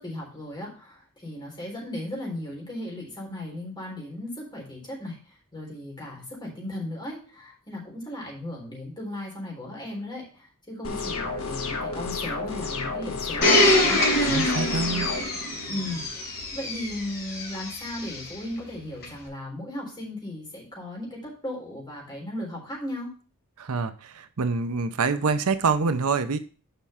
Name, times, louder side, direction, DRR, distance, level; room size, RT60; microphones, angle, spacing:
voice 1, 0.0-14.0 15.7-23.1, left 1 dB, 20° left, -2 dB, 3.9 m, -36 dB
sound 1, 10.8-15.2, left 3 dB, 70° left, 1.5 m, -31 dB
Domestic sounds home sounds, 13.4-18.2 19.0-19.1, left 1 dB, 50° left, 5.0 m, -24 dB
voice 2, 14.3-15.1 23.6-26.4, right 4 dB, 80° right, 11 dB, 0.7 m, -26 dB
7.0 x 5.4 x 5.6 m, 0.38 s
head